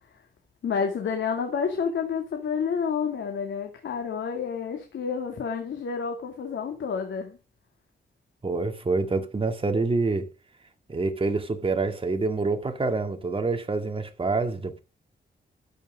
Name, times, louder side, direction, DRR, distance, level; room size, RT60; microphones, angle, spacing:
voice 1, 0.6-7.4, left 6 dB, 85° left, 2.4 m, -29 dB
voice 2, 8.4-10.3 10.9-14.8, right 3 dB, 30° right, 2.1 m, -26 dB
13.0 x 8.2 x 5.2 m
cardioid pair, 105°, 19 cm